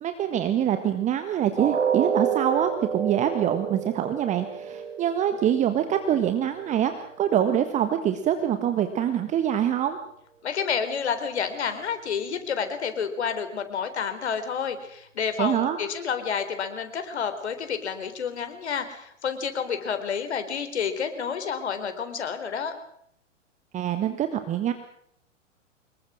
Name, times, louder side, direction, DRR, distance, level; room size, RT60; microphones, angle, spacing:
voice 1, 0.0-10.0 15.4-15.8 23.7-24.7, right 10 dB, 20° right, 9 dB, 1.6 m, -25 dB
sound 1, 1.6-7.5 7.9-8.1 8.6-8.7, right 7 dB, 70° right, 2.7 m, -30 dB
voice 2, 10.4-22.8, left 6 dB, 60° left, 9 dB, 4.1 m, -29 dB
25.5 x 22.5 x 6.4 m, 0.71 s
figure-of-eight pair, 110°, 38 cm